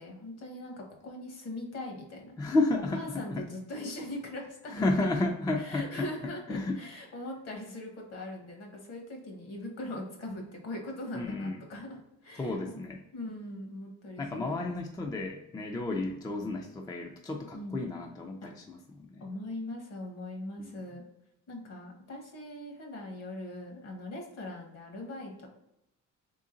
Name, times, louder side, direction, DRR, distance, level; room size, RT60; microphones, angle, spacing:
voice 1, 0.0-2.3 2.9-4.9 5.6-12.8 13.1-14.8 17.5-17.8 18.4-18.5 19.2-21.0 21.5-25.5, left 1 dB, 55° left, 2 dB, 1.3 m, -41 dB
voice 2, 2.4-3.4 4.7-6.1 6.5-6.8 11.1-11.6 12.4-13.0 14.2-19.3 20.6-20.7, left 2 dB, 15° left, 2 dB, 0.4 m, -32 dB
3.8 x 3.6 x 3.8 m, 0.83 s
cardioid pair, 155°, 31 cm